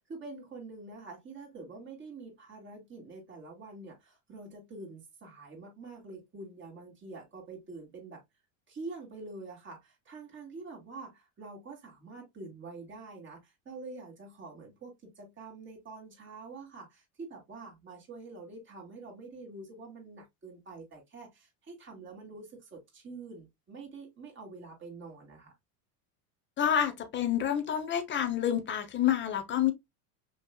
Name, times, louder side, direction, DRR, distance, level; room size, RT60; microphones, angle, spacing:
voice 1, 0.0-8.2 8.7-25.5, right 3 dB, 25° right, 2.9 m, -46 dB
voice 2, 26.6-29.7, left 10 dB, 25° left, 1.0 m, -28 dB
5.8 x 3.3 x 2.3 m
supercardioid pair, 125°, 46 cm